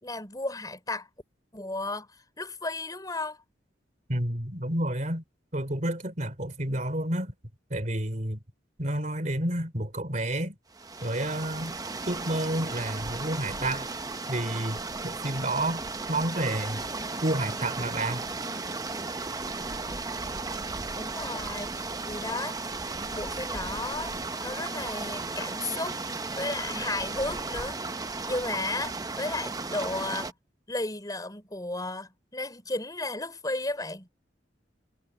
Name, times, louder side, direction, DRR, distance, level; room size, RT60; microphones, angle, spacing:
voice 1, 0.0-1.1 1.5-2.1 2.4-3.4 21.0-22.6 23.1-24.1 24.4-26.0 26.3-27.8 28.3-30.3 30.7-34.1, left 2 dB, 20° left, 4.7 m, -34 dB
voice 2, 4.1-5.2 5.5-7.3 7.7-8.4 8.8-10.6 11.0-11.7 12.0-13.9 14.3-14.8 15.0-16.8 17.2-18.3, right 1 dB, 45° right, 3.3 m, -30 dB
sound 1, 10.7-30.3, right 3 dB, 20° right, 0.8 m, -35 dB
head